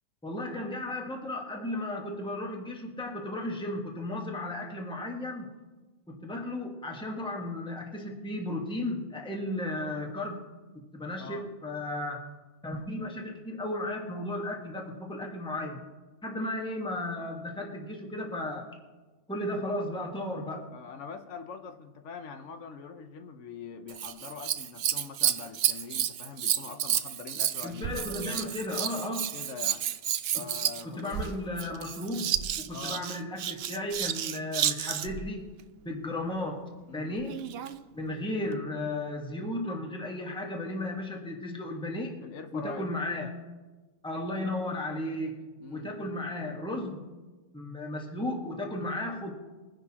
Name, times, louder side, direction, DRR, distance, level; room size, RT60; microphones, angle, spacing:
voice 1, 0.2-5.4 6.1-10.4 10.9-12.3 12.6-15.8 16.2-18.7 19.3-20.7 27.6-29.3 30.3-30.5 30.8-32.3 32.7-35.5 35.8-37.4 37.9-42.2 42.5-43.3 44.0-47.1 47.5-49.3, left 1 dB, 5° left, 0 dB, 1.3 m, -34 dB
voice 2, 11.2-11.5 20.7-28.5 29.3-29.8 30.3-31.3 32.7-33.1 36.9-37.2 42.2-42.9 45.6-46.0, left 5 dB, 60° left, 7 dB, 1.1 m, -43 dB
Scissors, 23.9-35.2 37.2-37.8 38.5-38.6, right 10 dB, 65° right, 0.6 m, -31 dB
21.5 x 10.5 x 2.9 m, 1.2 s
omnidirectional pair, 1.5 m